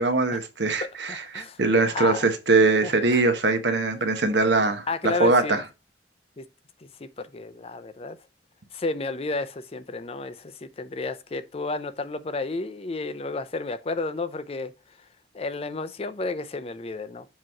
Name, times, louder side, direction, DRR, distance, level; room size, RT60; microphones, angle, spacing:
voice 1, 0.0-4.8 5.2-5.6, right 3 dB, 70° right, 1.0 m, -22 dB
voice 2, 0.8-2.3 2.8-3.3 4.9-5.6 6.4-6.5 6.8-8.2 8.7-15.1 15.3-17.3, left 3 dB, 30° left, 0.4 m, -32 dB
7.5 x 3.0 x 4.6 m
head